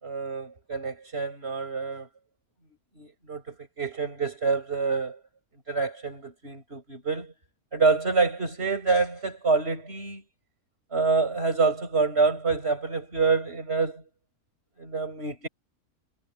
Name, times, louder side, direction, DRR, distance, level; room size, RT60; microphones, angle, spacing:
voice 1, 0.0-2.1 3.0-5.2 5.7-7.3 7.7-10.2 10.9-14.0 14.8-15.5, right 4 dB, 45° right, 5.7 m, -27 dB
omnidirectional pair, 1.5 m